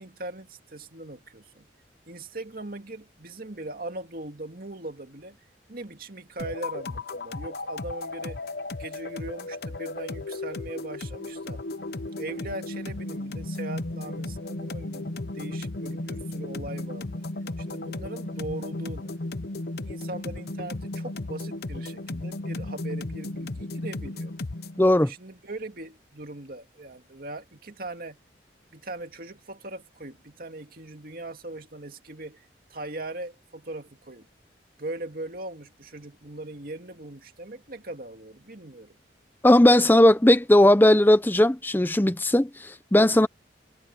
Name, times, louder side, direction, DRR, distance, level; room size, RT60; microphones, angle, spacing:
voice 1, 0.0-1.7 2.1-5.4 5.7-8.4 8.8-11.6 12.2-17.1 17.6-19.2 19.9-24.3 25.0-28.2 28.7-32.4 32.7-34.3 34.8-39.0 43.2-43.3, right 2 dB, 55° right, 2.3 m, -40 dB
sound 1, 6.4-24.8, left 2 dB, 60° left, 0.9 m, -35 dB
voice 2, 24.8-25.1 39.4-43.3, left 1 dB, 10° left, 0.6 m, -18 dB
head